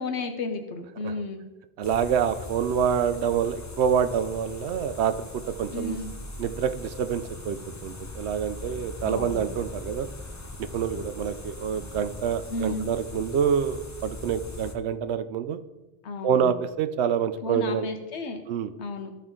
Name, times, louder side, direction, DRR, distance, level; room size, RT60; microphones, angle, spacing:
voice 1, 0.0-1.4 5.7-6.1 9.0-9.4 12.5-12.9 16.0-16.5 17.4-18.4 18.8-19.1, left 2 dB, 85° left, 6 dB, 1.2 m, -32 dB
sound 1, 1.8-14.7, left 2 dB, 20° left, 0.5 m, -40 dB
voice 2, 1.8-5.1 5.6-6.0 6.4-7.6 7.8-10.1 10.6-15.6 16.2-17.9 18.5-18.7, right 8 dB, 80° right, 10 dB, 0.9 m, -26 dB
13.5 x 4.5 x 3.7 m, 1.1 s
omnidirectional pair, 1.1 m